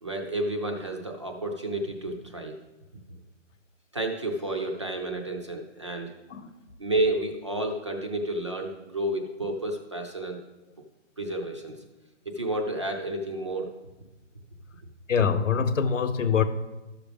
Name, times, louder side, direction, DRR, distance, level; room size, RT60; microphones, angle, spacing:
voice 1, 0.0-2.6 3.9-6.1 6.8-10.4 11.2-11.8 12.3-13.7, right 1 dB, 25° right, 2 dB, 0.6 m, -30 dB
voice 2, 15.1-16.4, left 6 dB, 80° left, 11 dB, 1.0 m, -24 dB
13.0 x 5.9 x 3.4 m, 1.1 s
hypercardioid pair, 170°, 37 cm